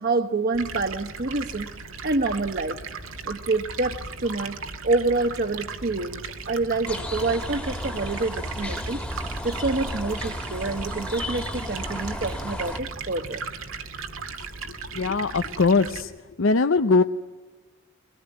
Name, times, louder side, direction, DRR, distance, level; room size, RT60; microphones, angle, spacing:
voice 1, 0.0-1.7 2.0-2.8 3.2-4.6 4.8-9.0 9.4-13.4, right 3 dB, 45° right, 6 dB, 1.0 m, -27 dB
Stream, 0.5-16.0, right 4 dB, 85° right, 2.1 m, -37 dB
sound 1, 6.9-12.8, left 1 dB, 5° left, 1.7 m, -33 dB
voice 2, 14.9-16.1 16.4-17.0, left 4 dB, 75° left, 9 dB, 0.7 m, -21 dB
23.0 x 19.0 x 9.6 m, 1.3 s
head